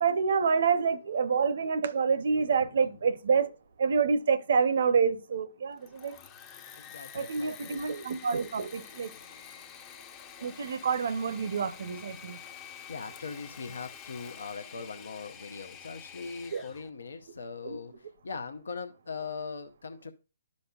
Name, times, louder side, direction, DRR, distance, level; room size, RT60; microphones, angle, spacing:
voice 1, 0.0-3.5 3.8-6.2 7.1-9.1 10.4-12.4 16.5-16.6 17.7-17.8, right 5 dB, 65° right, 0.6 m, -27 dB
voice 2, 2.3-3.0 6.7-7.9 8.6-9.7 12.9-20.1, left 5 dB, 85° left, 0.6 m, -41 dB
Engine / Mechanisms, 5.7-16.9, left 8 dB, 25° left, 0.6 m, -48 dB
11.5 x 5.3 x 2.3 m
hypercardioid pair, 155°, 0 cm